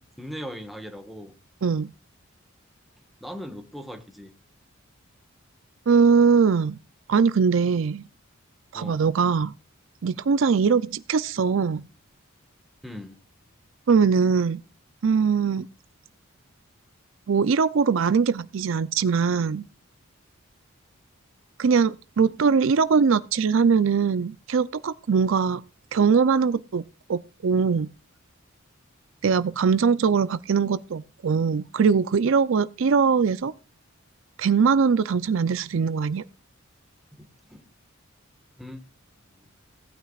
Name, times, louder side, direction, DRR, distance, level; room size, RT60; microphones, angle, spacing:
voice 1, 0.2-1.4 3.2-4.3 8.7-9.0 12.8-13.2 37.1-37.7 38.6-38.9 39.2-39.5, equal, ahead, 1.4 m, -39 dB
voice 2, 5.9-6.8 7.1-8.0 8.7-9.5 10.0-11.9 13.9-14.6 15.0-15.7 17.3-19.7 21.6-25.6 25.9-26.8 27.1-27.9 29.2-33.5 34.4-36.2, right 5 dB, 65° right, 0.4 m, -21 dB
18.0 x 9.1 x 2.4 m
head